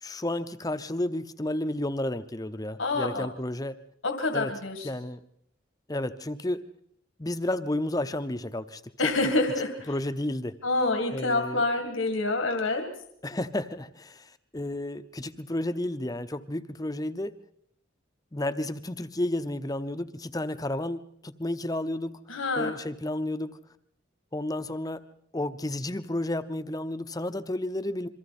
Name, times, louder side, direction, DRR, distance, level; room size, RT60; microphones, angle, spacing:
voice 1, 0.0-3.8 4.3-4.5 4.8-5.2 5.9-6.6 7.2-8.8 9.9-10.6 11.1-11.6 13.2-17.4 18.3-22.2 22.6-23.6 24.3-25.0 25.3-28.1, left 1 dB, 20° left, 11 dB, 0.7 m, -32 dB
voice 2, 2.8-3.3 4.0-4.9 9.0-9.9 10.6-12.8 22.3-22.7, left 2 dB, 90° left, 5 dB, 2.1 m, -27 dB
27.5 x 23.0 x 4.3 m, 0.71 s
head